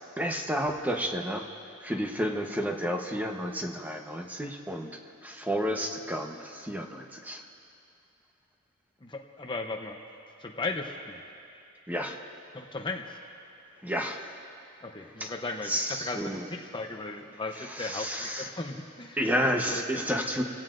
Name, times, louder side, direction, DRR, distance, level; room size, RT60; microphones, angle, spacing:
voice 1, 0.0-1.5 1.8-4.9 5.2-7.4 11.9-12.2 13.8-14.3 15.2-15.3 15.7-16.4 17.8-18.5 19.2-20.4, equal, 10° right, 2 dB, 1.0 m, -31 dB
voice 2, 9.0-10.0 10.4-11.2 12.5-13.2 14.8-19.2 19.7-20.1, left 3 dB, 25° left, 3 dB, 0.8 m, -36 dB
29.5 x 17.0 x 2.6 m, 2.6 s
head